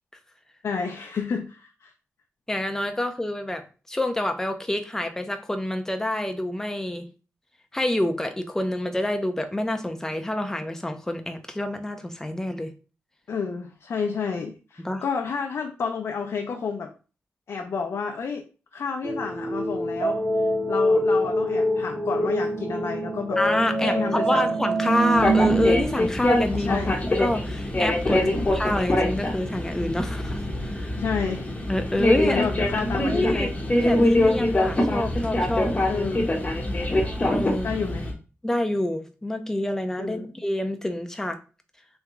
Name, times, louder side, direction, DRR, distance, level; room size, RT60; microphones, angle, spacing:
voice 1, 0.6-1.9 13.3-16.9 17.5-18.4 18.7-20.2 20.7-23.4 23.8-24.4 26.5-27.0 28.1-28.5 31.0-31.5 32.2-33.5 35.9-36.3 37.6-38.1 40.0-40.3, left 5 dB, 70° left, 3 dB, 0.5 m, -30 dB
voice 2, 2.5-7.1 7.7-12.7 14.8-15.0 23.4-26.8 27.1-28.2 28.5-31.0 31.7-32.5 33.1-35.7 37.3-37.7 38.4-41.4, left 1 dB, 10° left, 6 dB, 0.6 m, -27 dB
sound 1, 19.0-25.8, right 1 dB, 85° right, 1.6 m, -24 dB
sound 2, 25.1-38.1, left 1 dB, 30° left, 0.8 m, -24 dB
3.5 x 3.1 x 3.5 m, 0.35 s
wide cardioid pair, 125°, 5 cm